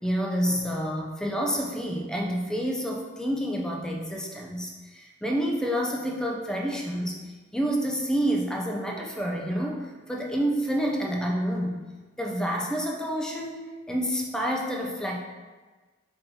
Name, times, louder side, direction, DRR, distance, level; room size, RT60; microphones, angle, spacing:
voice 1, 0.0-7.2 7.5-11.8 12.2-15.2, equal, 5° left, -1 dB, 0.4 m, -28 dB
5.3 x 2.8 x 2.7 m, 1.3 s
head